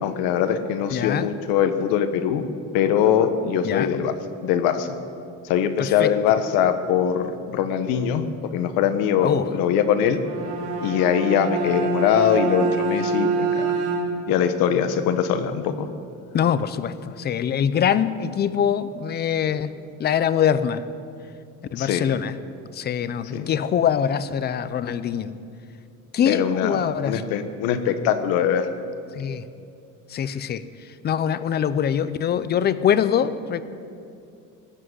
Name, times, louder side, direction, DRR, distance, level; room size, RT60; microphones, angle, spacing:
voice 1, 0.0-2.4 2.7-4.1 4.4-4.9 5.4-8.2 8.5-10.2 10.8-13.7 14.3-15.9 21.8-22.1 23.3-23.5 26.3-28.7, left 8 dB, 80° left, 10 dB, 1.3 m, -22 dB
voice 2, 0.9-1.3 3.6-3.9 5.8-6.4 9.2-9.4 16.3-19.7 20.0-20.8 21.7-22.4 22.7-25.3 26.1-27.3 29.1-29.5 30.1-30.6 31.0-33.6, left 8 dB, 30° left, 14 dB, 0.6 m, -23 dB
Bowed string instrument, 10.1-14.4, right 4 dB, 75° right, 3.2 m, -26 dB
18.5 x 7.7 x 9.7 m, 2.5 s
cardioid pair, 150°, 35 cm